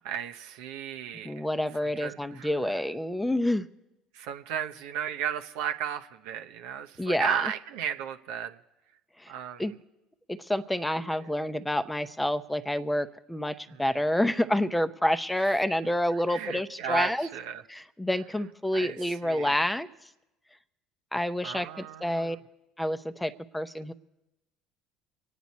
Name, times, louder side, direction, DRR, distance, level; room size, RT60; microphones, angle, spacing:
voice 1, 0.0-1.4 1.8-2.8 4.1-8.6 9.3-9.7 13.7-13.8 16.1-17.6 18.7-19.6 21.4-22.4, right 9 dB, 70° right, 6 dB, 0.8 m, -35 dB
voice 2, 1.2-3.7 7.0-7.4 9.2-9.3 9.6-9.7 10.3-17.3 17.7-19.9 21.1-22.4 22.8-23.9, left 1 dB, 5° left, 12 dB, 0.8 m, -28 dB
25.5 x 9.2 x 4.2 m, 0.96 s
hypercardioid pair, 60°, 0 cm